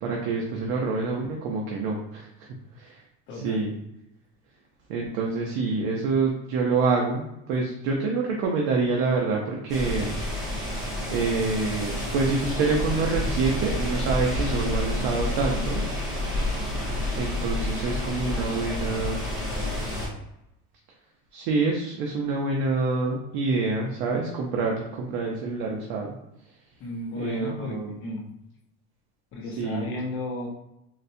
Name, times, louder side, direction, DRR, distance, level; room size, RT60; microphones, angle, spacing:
voice 1, 0.0-2.3 2.8-3.0 3.4-3.7 4.9-10.2 11.1-15.8 17.1-19.2 21.3-26.1 27.2-27.9 29.6-29.9, right 3 dB, 85° right, -1 dB, 0.7 m, -26 dB
voice 2, 3.3-3.7 26.8-28.3 29.3-30.5, left 2 dB, 35° left, 0 dB, 0.6 m, -34 dB
sound 1, 9.7-20.1, left 1 dB, 10° right, 0.9 m, -29 dB
4.1 x 2.1 x 2.6 m, 0.85 s
cardioid pair, 180°, 33 cm